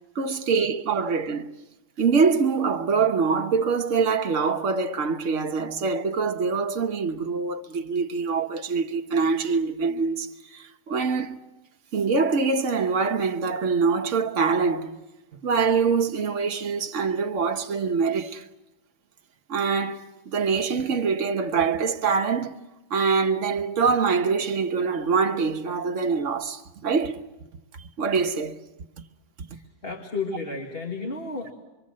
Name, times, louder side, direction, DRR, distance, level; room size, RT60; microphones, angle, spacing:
voice 1, 0.1-1.5 2.0-11.4 11.9-14.9 15.3-18.5 19.5-22.6 22.9-27.2 27.7-28.6 29.4-29.6, right 5 dB, 55° right, 1.3 m, -24 dB
voice 2, 29.5-31.5, left 3 dB, 40° left, 2.1 m, -32 dB
25.5 x 23.5 x 7.5 m
omnidirectional pair, 1.6 m